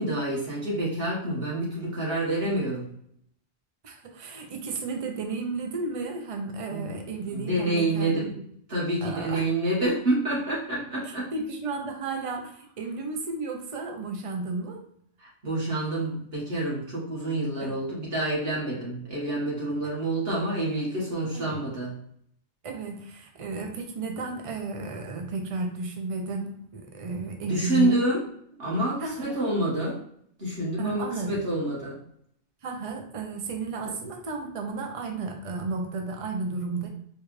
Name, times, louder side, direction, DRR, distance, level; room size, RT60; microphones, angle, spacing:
voice 1, 0.0-2.9 6.7-6.9 7.3-8.3 8.7-11.3 15.2-21.9 27.5-28.2 28.6-30.0 30.4-32.0, right 1 dB, 60° right, -5 dB, 1.8 m, -28 dB
voice 2, 3.8-8.5 9.0-9.5 11.0-14.8 17.6-17.8 19.8-19.9 21.3-21.6 22.6-28.0 29.0-29.4 30.8-31.4 32.6-36.9, right 3 dB, 35° right, 3 dB, 0.6 m, -33 dB
4.6 x 2.4 x 3.2 m, 0.68 s
omnidirectional pair, 1.2 m